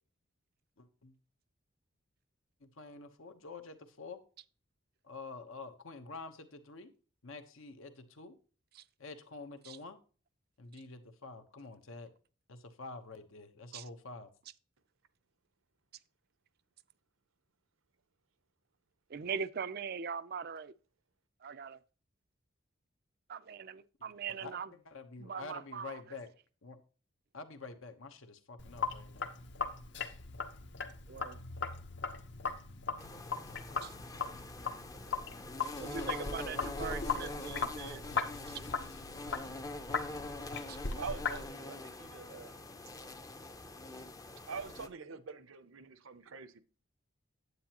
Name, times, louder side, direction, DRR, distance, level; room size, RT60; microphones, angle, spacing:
voice 1, 0.8-1.1 2.6-4.2 5.0-6.9 7.2-8.3 9.0-10.0 10.6-12.1 12.5-14.3 24.4-26.3 26.6-26.8 27.3-29.3, left 3 dB, 75° left, 1.1 m, -48 dB
voice 2, 19.1-20.7 21.4-21.8 23.3-24.7 25.2-26.0 31.1-31.4 33.8-33.9 35.8-38.0 38.5-38.6 40.7-40.8, right 6 dB, 45° right, 0.4 m, -41 dB
Sink (filling or washing), 28.6-41.5, left 5 dB, 55° left, 0.9 m, -39 dB
sound 1, 33.0-44.9, left 2 dB, 15° left, 0.5 m, -44 dB
voice 3, 41.0-42.6 44.5-46.6, right 5 dB, 75° right, 0.7 m, -45 dB
9.5 x 8.3 x 2.9 m
head